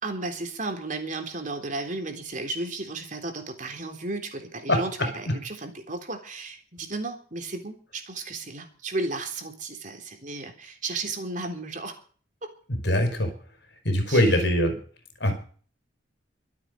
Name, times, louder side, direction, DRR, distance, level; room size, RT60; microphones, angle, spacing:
voice 1, 0.0-12.0 14.1-14.3, right 2 dB, 45° right, 5 dB, 3.7 m, -34 dB
voice 2, 12.7-13.3 13.9-14.8 15.2-15.3, left 1 dB, 65° left, 6 dB, 5.3 m, -22 dB
24.5 x 8.4 x 5.3 m, 0.43 s
head